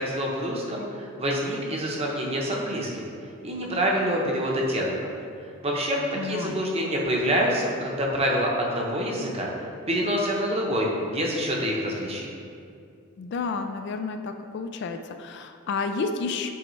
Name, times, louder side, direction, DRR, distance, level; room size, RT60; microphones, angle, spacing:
voice 1, 0.0-3.1 3.4-5.1 5.6-9.5 9.9-12.3, equal, 30° right, -1 dB, 0.8 m, -26 dB
voice 2, 6.1-6.6 13.2-16.5, left 4 dB, 50° left, 7 dB, 0.3 m, -31 dB
7.6 x 4.3 x 3.1 m, 2.4 s
head